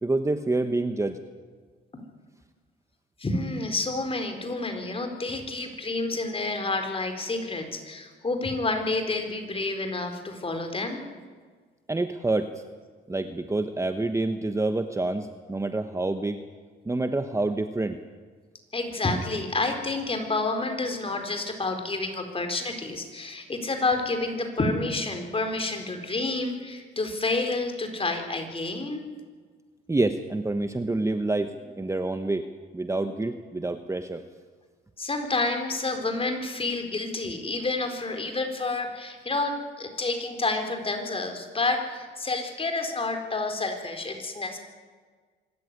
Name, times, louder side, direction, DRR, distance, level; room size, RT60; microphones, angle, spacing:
voice 1, 0.0-1.2 11.9-12.5 13.1-16.4 16.8-18.0 29.9-32.5 32.7-34.2, right 2 dB, 15° right, 8 dB, 1.2 m, -27 dB
voice 2, 3.2-11.0 18.7-29.0 35.0-44.6, left 3 dB, 30° left, 5 dB, 4.4 m, -29 dB
25.0 x 14.0 x 9.6 m, 1.5 s
cardioid pair, 90°, 20 cm